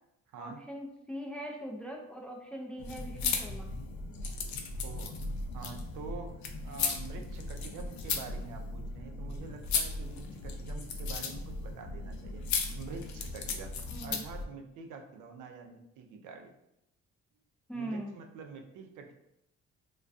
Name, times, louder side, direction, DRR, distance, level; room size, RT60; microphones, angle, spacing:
voice 1, 0.4-3.7 13.9-14.2 17.7-18.1, right 1 dB, 5° left, 0 dB, 0.3 m, -41 dB
sound 1, 2.8-14.4, left 4 dB, 70° left, 0.4 m, -36 dB
voice 2, 4.8-5.1 5.5-6.4 6.6-12.4 12.8-16.5 17.7-19.2, right 5 dB, 80° right, 4 dB, 0.5 m, -46 dB
2.2 x 2.2 x 2.5 m, 0.82 s
cardioid pair, 90°, 30 cm